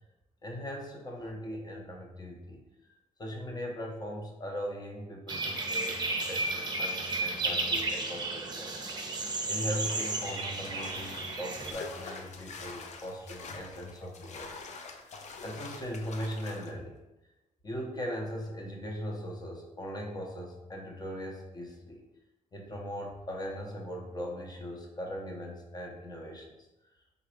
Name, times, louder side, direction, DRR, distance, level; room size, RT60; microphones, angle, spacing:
voice 1, 0.4-2.6 3.2-8.7 9.5-14.5 14.8-16.9 17.6-22.1 22.5-26.6, equal, 30° left, 0 dB, 0.9 m, -39 dB
sound 1, 5.3-11.7, right 2 dB, 30° right, 0.7 m, -33 dB
sound 2, 9.8-16.7, left 4 dB, 60° left, 0.5 m, -45 dB
3.9 x 3.6 x 3.3 m, 0.99 s
cardioid pair, 105°, 13 cm